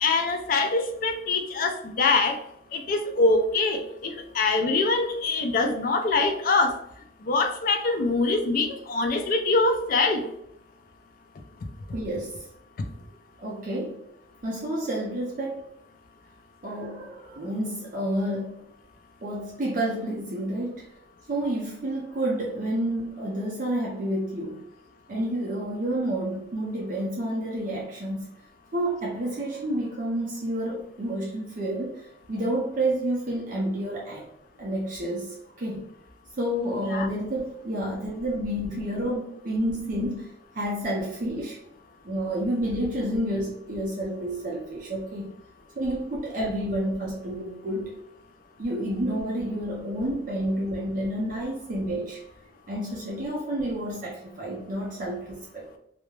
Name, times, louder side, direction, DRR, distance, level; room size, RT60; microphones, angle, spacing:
voice 1, 0.0-2.4 2.7-6.8 7.3-10.2 36.7-37.1, left 3 dB, 45° left, 6 dB, 0.3 m, -24 dB
voice 2, 11.9-12.5 13.4-14.0 14.4-15.6 16.6-18.6 19.2-20.8 21.3-24.6 25.1-28.3 28.7-31.9 32.3-34.3 34.6-35.9 36.4-41.6 42.0-45.3 45.8-48.0 48.6-52.2 52.7-55.8, right 1 dB, 45° right, -4 dB, 0.4 m, -29 dB
2.2 x 2.0 x 3.0 m, 0.76 s
head